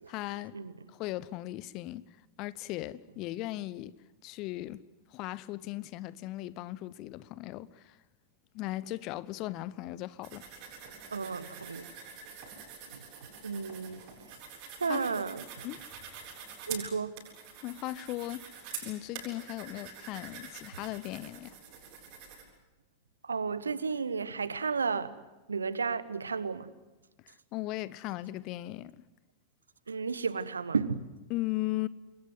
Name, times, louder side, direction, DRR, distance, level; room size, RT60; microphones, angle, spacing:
voice 1, 0.1-0.6 0.9-3.9 4.2-4.8 5.1-8.0 8.5-10.5 14.9-15.1 15.6-15.8 17.6-21.6 27.2-29.0 31.3-31.9, left 17 dB, 40° left, 0.9 m, -38 dB
sound 1, 10.2-22.4, right 6 dB, 45° right, 7.6 m, -46 dB
voice 2, 11.1-11.9 12.9-13.0 13.4-14.0 14.8-15.7 16.7-17.1 23.2-25.1 25.5-26.7 29.9-31.1, right 5 dB, 75° right, 1.2 m, -33 dB
27.5 x 22.5 x 7.9 m
figure-of-eight pair, 90°, 0 cm